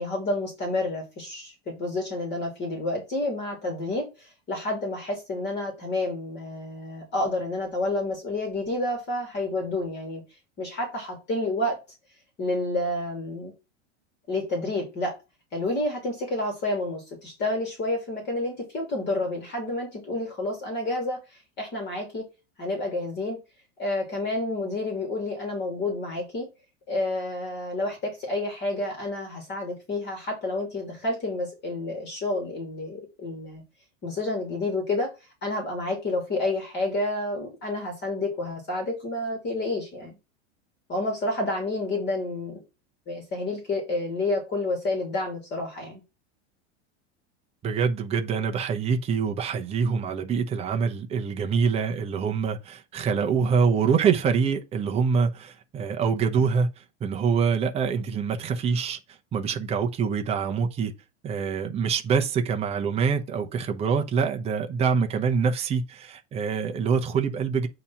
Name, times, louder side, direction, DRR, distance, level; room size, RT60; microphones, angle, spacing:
voice 1, 0.0-10.2 10.6-11.8 12.4-13.5 14.3-15.1 15.5-22.3 22.6-23.4 23.8-26.5 26.9-33.6 34.0-40.2 40.9-42.6 43.1-46.0, left 2 dB, 30° left, 2.6 m, -29 dB
voice 2, 47.6-59.0 59.3-60.9 61.2-67.7, right 6 dB, 15° right, 0.7 m, -25 dB
8.4 x 3.0 x 5.6 m
supercardioid pair, 145°, 36 cm